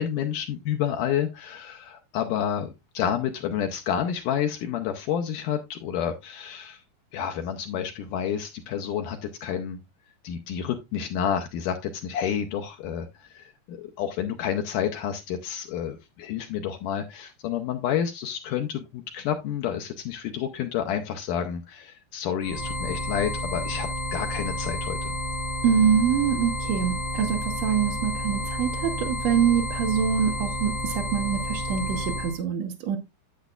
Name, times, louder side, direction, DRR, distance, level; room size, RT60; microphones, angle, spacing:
voice 1, 0.0-6.8 7.1-9.8 10.2-25.1, left 9 dB, 75° left, 2.0 m, -29 dB
sound 1, 22.4-32.4, left 1 dB, 50° left, 0.4 m, -31 dB
voice 2, 25.6-33.0, right 8 dB, 80° right, 1.5 m, -25 dB
10.5 x 7.8 x 2.4 m
omnidirectional pair, 4.4 m